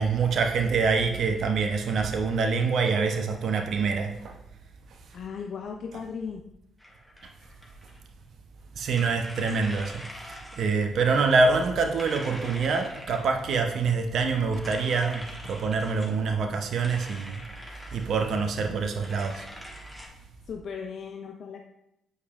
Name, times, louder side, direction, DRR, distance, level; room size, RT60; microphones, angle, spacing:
voice 1, 0.0-4.3 5.9-6.0 8.8-17.4 17.9-19.4, right 4 dB, 60° right, 5 dB, 0.6 m, -25 dB
voice 2, 5.1-6.5 18.3-18.8 20.5-21.6, left 6 dB, 60° left, 4 dB, 0.4 m, -37 dB
sound 1, 6.8-8.0 8.8-10.7 11.5-13.6 14.5-16.2 16.7-18.1 19.0-20.1, left 1 dB, 10° left, 1.5 m, -44 dB
8.1 x 5.0 x 2.4 m, 0.82 s
hypercardioid pair, 45°, 0 cm